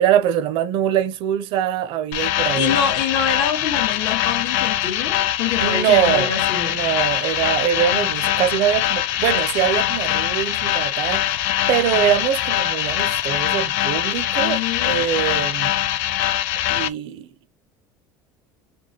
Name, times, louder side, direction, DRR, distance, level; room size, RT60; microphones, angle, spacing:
voice 1, 0.0-2.8 5.6-15.7 16.3-16.4 16.7-17.3, right 10 dB, 60° right, 0.7 m, -23 dB
sound 1, 2.1-16.9, left 13 dB, 90° left, 0.5 m, -22 dB
voice 2, 2.5-6.8 14.4-15.0, left 7 dB, 60° left, 1.6 m, -25 dB
4.3 x 2.2 x 3.0 m
cardioid pair, 140°, 10 cm